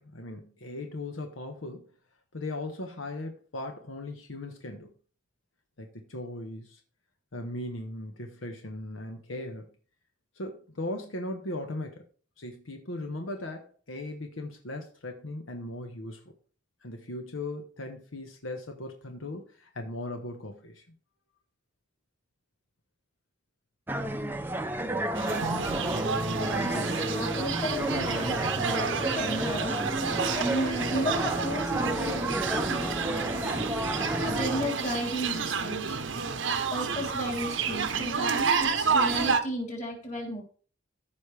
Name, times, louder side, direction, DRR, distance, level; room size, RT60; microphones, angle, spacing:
voice 1, 0.0-1.9 2.3-4.9 5.8-6.8 7.3-9.7 10.4-12.0 12.4-16.2 16.8-20.8, left 1 dB, 90° left, 4 dB, 1.2 m, -38 dB
sound 1, 23.9-34.7, right 1 dB, 10° right, 0.6 m, -31 dB
sound 2, 25.1-39.4, right 5 dB, 75° right, 0.9 m, -30 dB
voice 2, 26.4-29.8 30.3-33.7 34.2-36.0 36.7-40.4, equal, 35° left, 0 dB, 3.2 m, -34 dB
14.5 x 5.3 x 3.3 m, 0.41 s
head